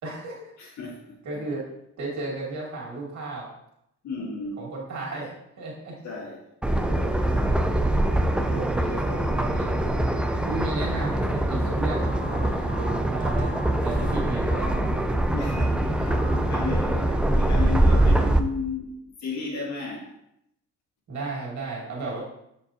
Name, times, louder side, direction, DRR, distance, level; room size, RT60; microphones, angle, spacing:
voice 1, 0.0-0.5 1.2-1.7 2.0-3.5 4.6-6.0 6.9-7.4 8.0-9.8 10.5-15.0 16.8-17.0 21.1-22.2, right 2 dB, 70° right, -3 dB, 2.1 m, -34 dB
voice 2, 0.6-1.4 4.0-4.6 6.0-6.4 15.3-18.9 19.2-20.1, left 3 dB, 70° left, -1 dB, 1.9 m, -34 dB
sound 1, 6.6-18.4, right 1 dB, 5° right, 0.4 m, -23 dB
Telephone, 11.9-14.8 15.3-15.7 16.1-16.4, left 1 dB, 25° left, 2.3 m, -42 dB
7.4 x 4.6 x 2.8 m, 0.79 s
cardioid pair, 90°, 30 cm